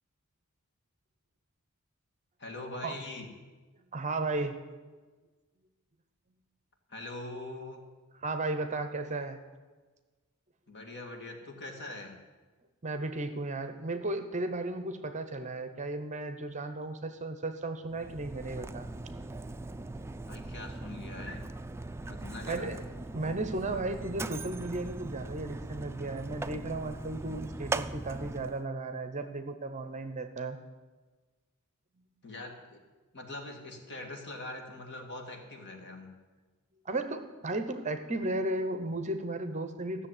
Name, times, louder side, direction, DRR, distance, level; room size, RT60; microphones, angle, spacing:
voice 1, 2.4-3.3 6.9-7.9 10.7-12.2 20.3-21.5 22.1-22.8 32.2-32.8 33.1-36.1, left 2 dB, 55° left, 2 dB, 2.1 m, -43 dB
voice 2, 3.9-4.6 8.2-9.4 12.8-18.9 22.5-22.8 23.1-30.6 36.8-40.1, right 2 dB, 35° right, 9 dB, 0.9 m, -35 dB
Mechanisms, 17.9-28.7, right 2 dB, 10° right, 0.3 m, -40 dB
14.0 x 6.8 x 9.1 m, 1.3 s
head